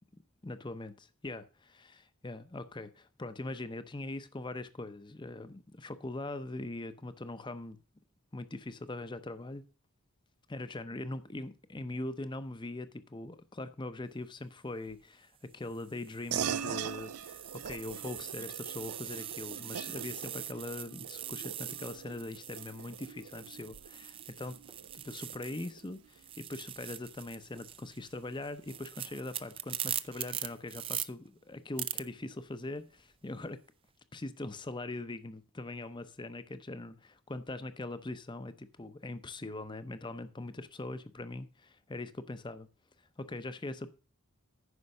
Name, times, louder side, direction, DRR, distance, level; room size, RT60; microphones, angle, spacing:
voice 1, 0.4-7.8 8.3-9.6 10.5-24.5 25.0-33.6 34.1-42.7 43.2-43.9, left 2 dB, 20° left, 0.6 m, -41 dB
sound 1, 14.7-15.0 15.7-25.9 26.1-31.1 31.8-32.0, right 11 dB, 25° right, 0.4 m, -42 dB
sound 2, 16.3-26.2, right 8 dB, 85° right, 0.5 m, -42 dB
9.7 x 5.8 x 6.5 m
head